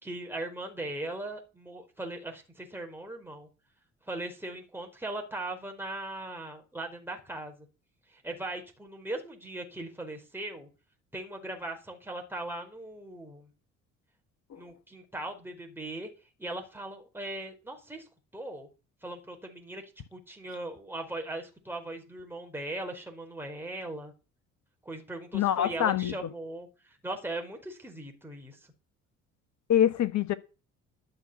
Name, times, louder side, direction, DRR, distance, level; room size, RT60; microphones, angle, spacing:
voice 1, 0.0-3.5 4.1-7.5 8.1-10.7 11.1-13.5 14.6-16.1 16.4-18.1 18.3-18.7 19.0-19.8 20.1-24.1 24.8-28.6, right 2 dB, 5° right, 4.7 m, -39 dB
voice 2, 25.3-26.1 29.7-30.3, left 10 dB, 45° left, 1.5 m, -25 dB
12.5 x 6.4 x 6.9 m
figure-of-eight pair, 50°, 39 cm